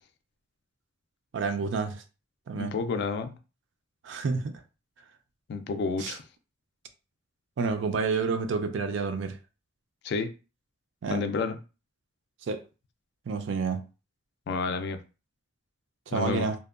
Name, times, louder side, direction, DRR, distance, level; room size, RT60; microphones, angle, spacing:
voice 1, 1.3-2.0 2.5-2.7 4.0-4.6 6.0-6.2 7.6-9.4 11.0-11.2 12.5-12.6 13.3-13.8 16.1-16.6, right 4 dB, 65° right, 0.4 m, -29 dB
voice 2, 2.5-3.4 5.5-6.2 10.0-10.3 11.1-11.6 14.5-15.0 16.1-16.5, left 4 dB, 60° left, 0.3 m, -30 dB
2.7 x 2.2 x 2.4 m
head